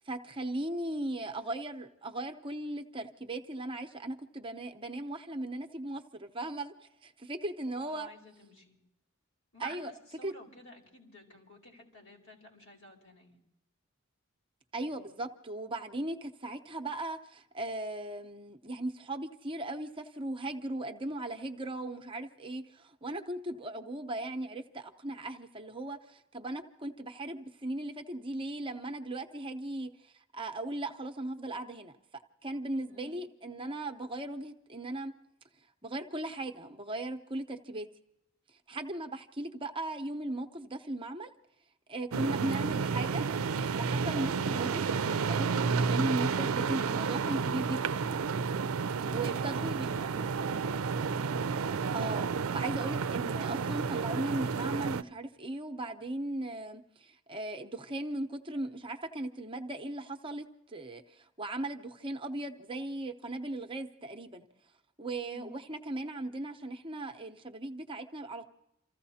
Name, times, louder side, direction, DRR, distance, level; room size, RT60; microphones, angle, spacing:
voice 1, 0.0-6.7 7.0-8.1 9.6-9.9 10.2-10.3 14.7-35.1 35.8-37.9 38.7-41.3 41.9-43.3 43.7-48.2 49.1-49.9 51.9-64.5 65.0-68.5, right 1 dB, 25° right, 5 dB, 0.8 m, -38 dB
voice 2, 7.8-8.8 9.5-13.4 32.9-33.2 49.0-51.0 65.3-65.6, equal, 70° left, 0 dB, 4.4 m, -52 dB
sound 1, 42.1-55.0, right 5 dB, 80° right, 0.5 m, -31 dB
29.0 x 15.0 x 2.8 m, 0.90 s
head